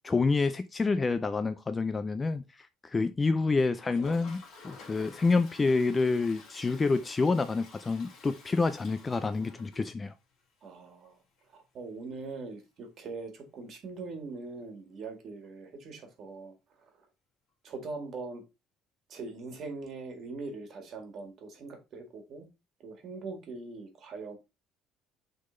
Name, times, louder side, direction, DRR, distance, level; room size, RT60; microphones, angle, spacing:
voice 1, 0.0-2.4 2.8-10.1, left 3 dB, 15° left, 0.3 m, -28 dB
Toilet flush, 3.7-10.4 10.7-10.8 11.0-11.1 11.4-11.5 14.0-14.1 15.4-15.5, left 4 dB, 45° left, 2.2 m, -51 dB
voice 2, 10.6-11.2 11.5-16.5 17.6-18.4 19.1-22.5 22.8-24.4, right 3 dB, 40° right, 1.7 m, -41 dB
6.6 x 3.7 x 3.8 m
cardioid pair, 165°, 0 cm